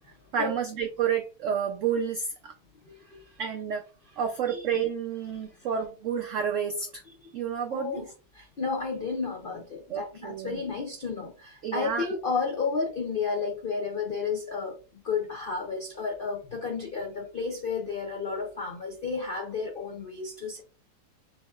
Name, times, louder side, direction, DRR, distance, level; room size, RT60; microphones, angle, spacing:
voice 1, 0.3-2.5 3.4-3.8 4.2-7.0 7.3-8.0 9.9-10.6 11.6-12.1, right 7 dB, 85° right, 0.6 m, -30 dB
voice 2, 2.9-3.2 4.5-4.6 7.2-7.3 7.7-8.1 8.3-14.8 15.0-20.6, left 5 dB, 70° left, 0.5 m, -32 dB
5.9 x 2.8 x 2.3 m
omnidirectional pair, 1.9 m